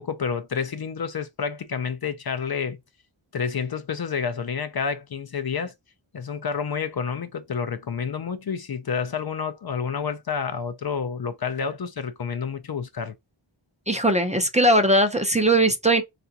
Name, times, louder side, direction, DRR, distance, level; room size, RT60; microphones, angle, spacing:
voice 1, 0.0-2.8 3.3-5.7 6.1-13.1, left 6 dB, 55° left, 0.5 m, -29 dB
voice 2, 13.9-16.0, right 1 dB, 15° right, 0.6 m, -19 dB
3.4 x 2.5 x 2.7 m
wide cardioid pair, 70°, 47 cm